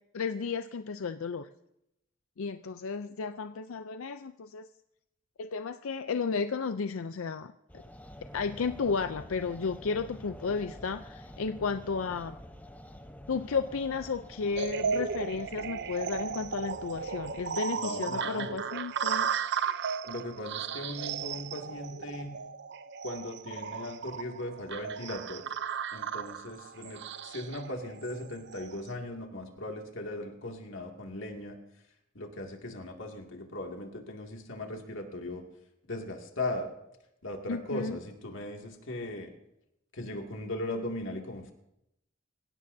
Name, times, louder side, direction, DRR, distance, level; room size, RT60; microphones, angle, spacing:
voice 1, 0.1-1.5 2.4-4.7 5.4-7.5 8.3-12.4 13.3-19.3 37.5-38.0, left 5 dB, 85° left, 9 dB, 0.5 m, -33 dB
sound 1, 7.7-17.6, equal, 10° left, 0.8 m, -48 dB
sound 2, 14.6-28.8, right 7 dB, 60° right, 0.6 m, -35 dB
voice 2, 17.7-18.7 20.0-22.4 23.0-25.4 25.9-31.6 32.1-35.4 35.9-36.7 37.2-39.3 39.9-41.5, left 1 dB, 65° left, 2 dB, 2.3 m, -38 dB
25.5 x 16.5 x 2.7 m, 0.84 s
head